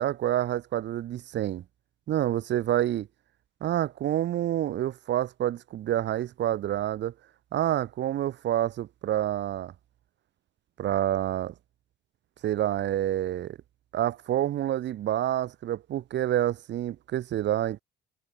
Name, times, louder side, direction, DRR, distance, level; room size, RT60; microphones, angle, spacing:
voice 1, 0.0-1.6 2.1-3.1 3.6-7.1 7.5-9.7 10.8-11.5 12.4-13.6 13.9-17.8, right 12 dB, 65° right, 3.6 m, -28 dB
cardioid pair, 130°, 20 cm